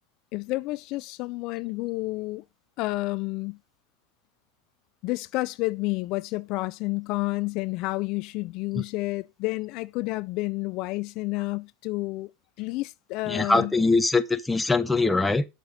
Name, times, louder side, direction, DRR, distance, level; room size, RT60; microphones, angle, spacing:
voice 1, 0.3-2.4 2.8-3.6 5.0-12.3 12.6-13.7, left 21 dB, 55° left, 0.3 m, -30 dB
voice 2, 13.3-15.5, left 3 dB, 10° left, 0.9 m, -22 dB
7.0 x 5.9 x 5.2 m
supercardioid pair, 120°, 0 cm